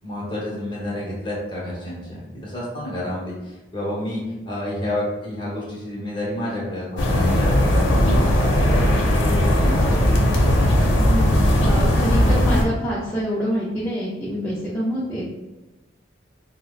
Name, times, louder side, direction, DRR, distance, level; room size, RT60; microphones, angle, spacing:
voice 1, 0.0-10.1, left 1 dB, 25° left, -6 dB, 1.0 m, -30 dB
sound 1, 7.0-12.6, left 1 dB, 90° left, 0.6 m, -18 dB
voice 2, 11.0-15.3, equal, 10° left, -9 dB, 0.5 m, -26 dB
4.4 x 2.1 x 2.3 m, 1.1 s
head